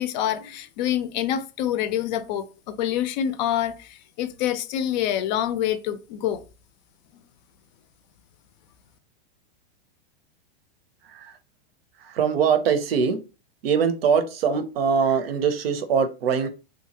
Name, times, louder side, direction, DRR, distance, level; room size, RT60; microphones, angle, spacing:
voice 1, 0.0-6.4, left 11 dB, 50° left, 0.4 m, -26 dB
voice 2, 12.0-13.2 13.6-16.5, right 6 dB, 80° right, 0.7 m, -22 dB
2.8 x 2.4 x 2.8 m
hypercardioid pair, 135°, 29 cm